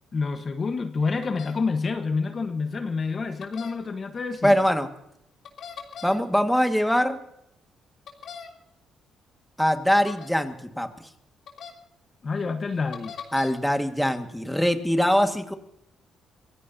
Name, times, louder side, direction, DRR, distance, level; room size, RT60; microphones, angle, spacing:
voice 1, 0.1-4.5 12.2-13.2, left 4 dB, 40° left, 7 dB, 1.2 m, -28 dB
sound 1, 1.2-1.5 3.4-3.7 5.4-6.2 8.1-8.5 10.0-10.3 11.5-11.7 12.9-13.5, left 7 dB, 65° left, 3.1 m, -39 dB
voice 2, 4.4-4.9 6.0-7.2 9.6-10.9 13.3-15.5, equal, 5° left, 6 dB, 1.7 m, -22 dB
25.0 x 16.0 x 2.8 m, 0.78 s
cardioid pair, 90°, 0 cm